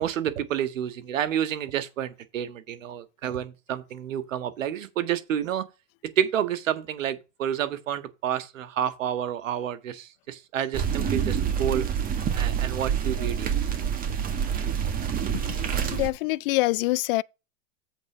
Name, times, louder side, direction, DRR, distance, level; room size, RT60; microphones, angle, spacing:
voice 1, 0.0-5.7 6.2-11.9 12.3-13.8 14.6-14.7, right 10 dB, 80° right, 1.8 m, -29 dB
sound 1, 10.7-16.1, right 8 dB, 20° right, 1.9 m, -27 dB
voice 2, 15.9-17.2, left 20 dB, 45° left, 0.5 m, -25 dB
8.1 x 4.1 x 6.8 m
supercardioid pair, 140°, 38 cm